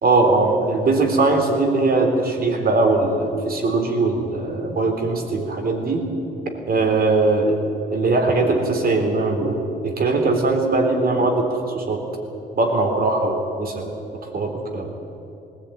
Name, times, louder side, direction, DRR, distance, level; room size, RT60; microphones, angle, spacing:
voice 1, 0.0-6.0 6.7-7.5 7.9-12.0 12.6-13.9 14.3-14.9, right 3 dB, 50° right, 3 dB, 3.9 m, -20 dB
20.0 x 16.5 x 9.3 m, 2.8 s
cardioid pair, 90°, 20 cm